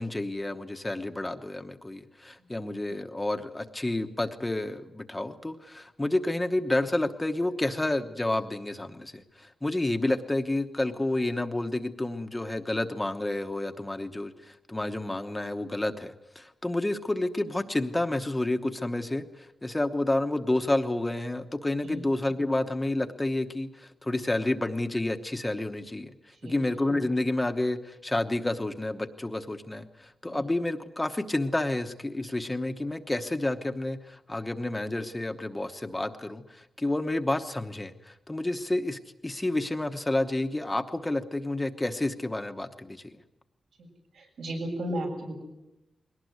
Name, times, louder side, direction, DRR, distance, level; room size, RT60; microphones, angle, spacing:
voice 1, 0.0-26.1 26.4-43.2, left 2 dB, 10° left, 7 dB, 1.0 m, -30 dB
voice 2, 44.1-45.4, right 1 dB, 80° right, 2 dB, 7.2 m, -35 dB
22.0 x 18.5 x 9.4 m, 0.96 s
wide cardioid pair, 175°, 0 cm